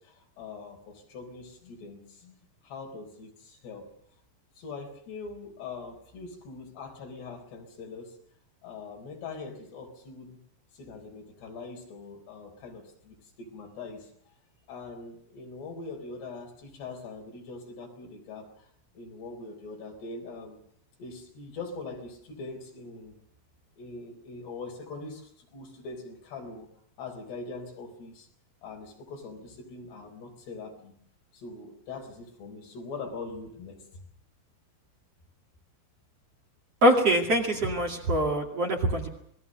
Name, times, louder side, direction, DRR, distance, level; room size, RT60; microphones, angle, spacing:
voice 1, 0.0-2.4 2.6-3.9 4.6-8.2 8.6-10.4 10.7-14.1 14.7-18.7 18.9-20.6 21.0-23.2 23.8-26.7 27.0-28.3 28.6-30.9 31.3-34.0, left 3 dB, 75° left, 3 dB, 6.2 m, -42 dB
voice 2, 36.8-39.1, equal, 40° right, 1 dB, 2.9 m, -24 dB
27.0 x 20.5 x 6.4 m, 0.68 s
omnidirectional pair, 4.9 m